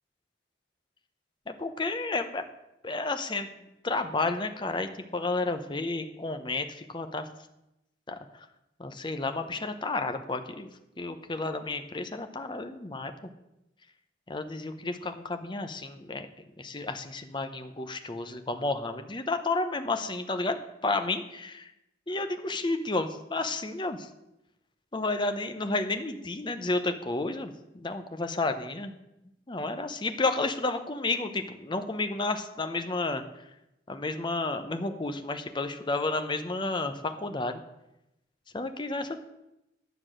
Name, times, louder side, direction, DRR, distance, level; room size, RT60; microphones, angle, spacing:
voice 1, 1.5-2.4 2.8-3.5 3.8-7.2 8.1-8.2 8.8-10.7 11.0-13.1 14.3-16.3 16.6-20.6 20.8-21.6 22.1-24.1 24.9-28.9 29.5-33.2 33.9-37.6 38.5-39.2, left 3 dB, 25° left, 7 dB, 0.7 m, -31 dB
10.0 x 7.0 x 6.2 m, 0.88 s
head